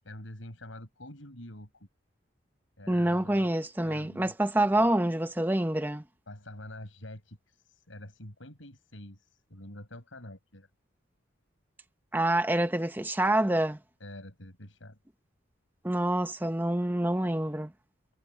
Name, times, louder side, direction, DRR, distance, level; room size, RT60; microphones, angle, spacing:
voice 1, 0.0-1.9 2.8-3.5 3.8-4.3 4.7-4.9 6.3-10.7 14.0-15.0, left 1 dB, 90° left, 6.8 m, -46 dB
voice 2, 2.9-6.0 12.1-13.8 15.8-17.7, right 1 dB, 10° right, 0.8 m, -27 dB
head